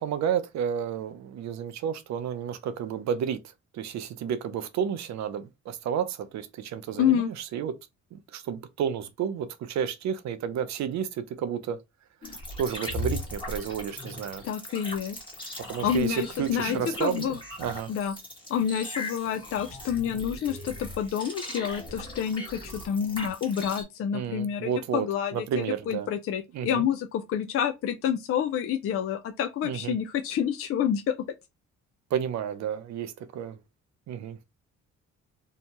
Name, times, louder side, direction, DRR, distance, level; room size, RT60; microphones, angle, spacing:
voice 1, 0.0-3.4 3.7-7.7 8.1-11.8 12.2-14.4 15.7-17.9 24.1-25.1 25.3-26.1 26.5-26.9 29.6-30.0 32.1-33.6 34.1-34.4, right 8 dB, 65° right, 0.5 m, -31 dB
voice 2, 7.0-7.3 14.4-15.2 15.8-17.4 17.9-18.2 18.5-31.1, left 8 dB, 50° left, 0.4 m, -28 dB
sound 1, 12.2-23.8, left 1 dB, 15° left, 1.2 m, -38 dB
2.7 x 2.2 x 2.8 m
cardioid pair, 90°, 30 cm